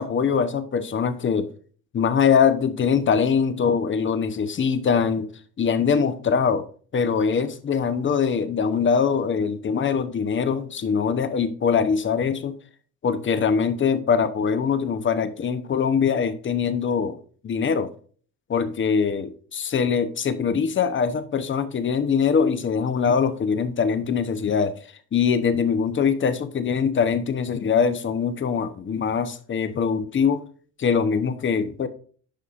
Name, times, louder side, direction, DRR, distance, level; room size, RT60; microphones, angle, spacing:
voice 1, 0.0-1.5 1.9-5.3 5.6-6.6 6.9-12.6 13.0-17.2 17.4-17.9 18.5-24.7 25.1-30.4 30.8-31.9, left 6 dB, 30° left, 0.9 m, -22 dB
10.5 x 5.4 x 2.5 m
supercardioid pair, 100°, 39 cm